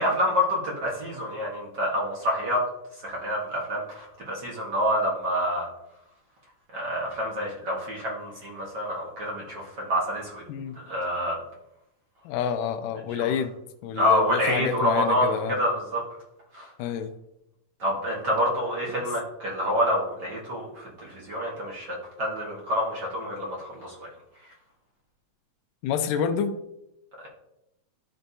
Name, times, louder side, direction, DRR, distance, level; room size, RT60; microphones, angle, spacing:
voice 1, 0.0-2.6 3.0-5.7 6.7-10.4 10.8-11.4 13.2-13.3 14.0-16.0 16.5-16.7 17.8-24.1, equal, 55° right, -4 dB, 1.1 m, -27 dB
voice 2, 12.3-13.6 13.8-15.6 16.8-17.1 25.8-26.5, left 7 dB, 80° left, 7 dB, 2.1 m, -28 dB
12.0 x 4.5 x 2.7 m, 0.85 s
omnidirectional pair, 4.1 m